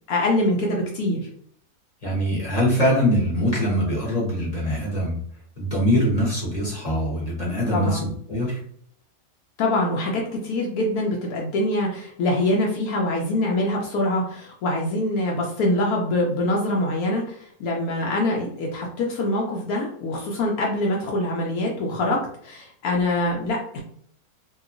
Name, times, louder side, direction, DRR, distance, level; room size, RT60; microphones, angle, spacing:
voice 1, 0.1-1.3 7.7-8.0 9.6-23.8, left 1 dB, 80° left, -1 dB, 1.0 m, -24 dB
voice 2, 2.0-5.2 5.6-8.6, equal, 35° left, -5 dB, 0.8 m, -23 dB
2.8 x 2.4 x 2.4 m, 0.63 s
omnidirectional pair, 1.6 m